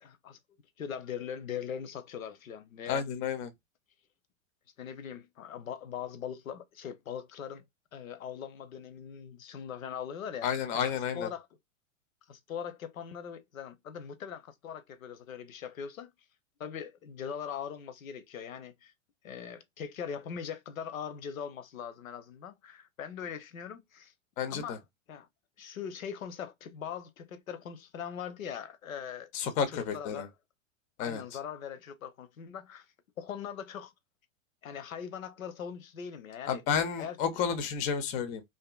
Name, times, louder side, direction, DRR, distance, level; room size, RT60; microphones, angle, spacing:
voice 1, 0.0-0.4 0.8-3.0 4.8-7.6 7.9-11.5 12.3-16.1 16.6-18.9 19.2-24.1 24.5-24.8 25.1-25.3 25.6-29.3 29.7-30.3 31.0-32.9 33.2-33.9 34.6-36.6 37.0-37.4, left 8 dB, 85° left, 0.6 m, -41 dB
voice 2, 2.9-3.5 10.4-11.3 24.4-24.8 29.3-30.3 31.0-31.2 36.5-38.4, left 7 dB, 20° left, 0.3 m, -31 dB
2.5 x 2.4 x 2.3 m
hypercardioid pair, 100°, 40 cm